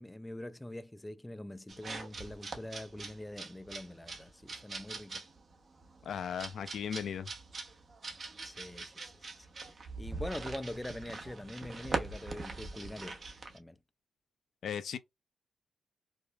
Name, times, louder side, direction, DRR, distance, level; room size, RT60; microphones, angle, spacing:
voice 1, 0.0-5.2 8.5-9.5 10.0-13.2 13.5-13.8, left 1 dB, 10° left, 0.3 m, -44 dB
sound 1, 1.7-13.6, right 3 dB, 40° right, 0.8 m, -42 dB
voice 2, 6.0-7.3 14.6-15.0, left 8 dB, 75° left, 0.4 m, -37 dB
4.8 x 2.1 x 2.2 m
wide cardioid pair, 120°, 0 cm